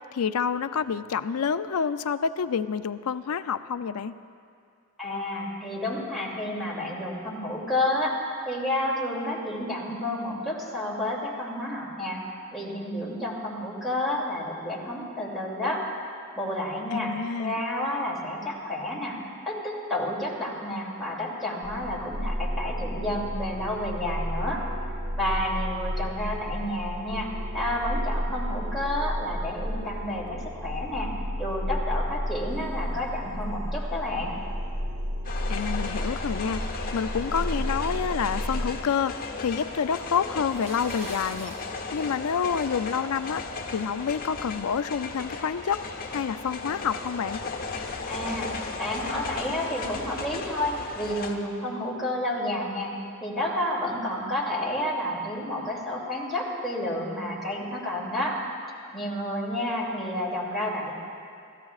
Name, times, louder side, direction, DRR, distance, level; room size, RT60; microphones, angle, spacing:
voice 1, 0.1-4.1 16.9-17.6 35.5-36.6 36.9-41.5 41.9-43.4 43.7-45.8 46.1-47.4, left 6 dB, 80° left, 12 dB, 0.4 m, -28 dB
voice 2, 5.0-8.2 8.5-12.2 12.5-15.9 16.4-19.2 19.5-24.6 24.9-31.1 31.4-34.4 48.1-48.5 48.8-52.9 53.2-58.4 58.9-60.9, left 1 dB, ahead, -6 dB, 2.7 m, -30 dB
sound 1, 21.6-38.7, equal, 60° right, 1.1 m, -32 dB
sound 2, 35.2-51.3, left 3 dB, 45° left, 1.2 m, -35 dB
sound 3, 40.4-41.6, right 1 dB, 30° right, 1.7 m, -43 dB
29.5 x 14.5 x 2.4 m, 2.4 s
head